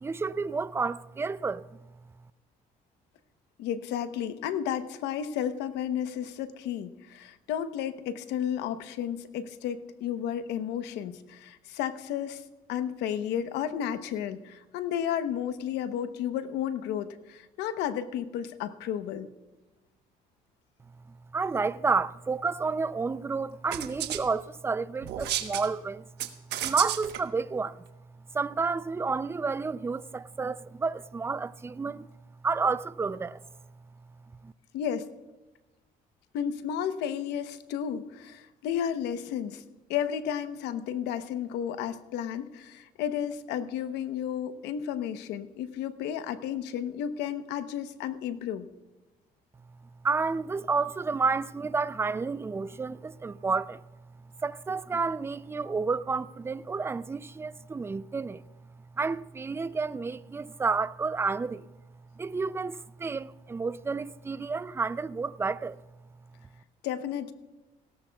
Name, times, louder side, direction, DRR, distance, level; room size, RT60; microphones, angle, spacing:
voice 1, 0.0-1.8 21.3-26.0 26.6-27.8 28.3-32.1 32.4-33.4 34.4-34.5 50.0-53.8 54.4-58.4 59.0-61.7 62.2-65.8, right 4 dB, 15° right, 0.4 m, -30 dB
voice 2, 3.6-12.4 12.7-19.3 34.7-35.1 36.3-39.6 39.9-48.7 66.8-67.3, left 9 dB, 90° left, 1.0 m, -32 dB
sound 1, 23.7-24.2 25.0-25.7 26.2-27.2, right 11 dB, 80° right, 1.2 m, -32 dB
18.5 x 17.0 x 2.3 m
cardioid pair, 110°, 17 cm